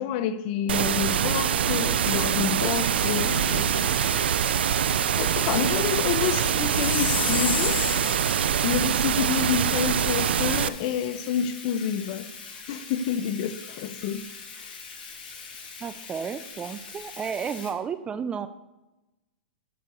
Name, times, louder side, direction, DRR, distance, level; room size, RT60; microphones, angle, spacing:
voice 1, 0.0-3.9 5.2-7.8 8.6-12.3 12.7-14.3, left 8 dB, 45° left, 0.8 m, -28 dB
sound 1, 0.7-10.7, right 9 dB, 85° right, 0.4 m, -24 dB
Bathtub (filling or washing), 2.6-17.7, left 5 dB, 70° left, 2.5 m, -42 dB
Chime, 6.6-8.6, left 9 dB, 90° left, 0.4 m, -31 dB
voice 2, 15.8-18.5, right 7 dB, 20° right, 0.5 m, -32 dB
11.0 x 4.8 x 6.8 m
hypercardioid pair, 135°, 6 cm